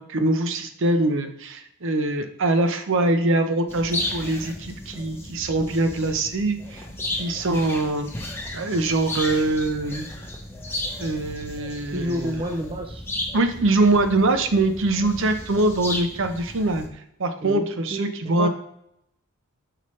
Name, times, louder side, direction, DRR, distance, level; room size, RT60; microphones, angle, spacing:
voice 1, 0.0-6.8 7.1-10.1 11.0-12.4 13.3-16.9 17.2-18.5, right 2 dB, 60° right, 7 dB, 0.7 m, -23 dB
sound 1, 3.7-16.9, left 1 dB, 10° left, 0.8 m, -34 dB
voice 2, 11.9-13.1 17.4-18.5, equal, 25° right, 4 dB, 0.4 m, -30 dB
5.8 x 5.4 x 3.1 m, 0.73 s
head